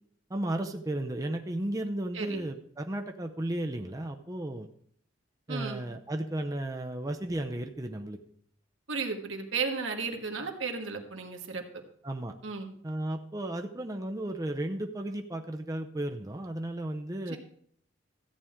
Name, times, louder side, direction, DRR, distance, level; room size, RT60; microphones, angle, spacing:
voice 1, 0.3-4.7 5.5-8.2 12.0-12.3 12.8-17.4, right 1 dB, 20° right, 4 dB, 0.6 m, -34 dB
voice 2, 5.5-5.8 8.9-11.6 12.4-12.7 17.3-17.4, right 4 dB, 85° right, 3 dB, 1.5 m, -34 dB
14.0 x 8.6 x 3.6 m, 0.64 s
head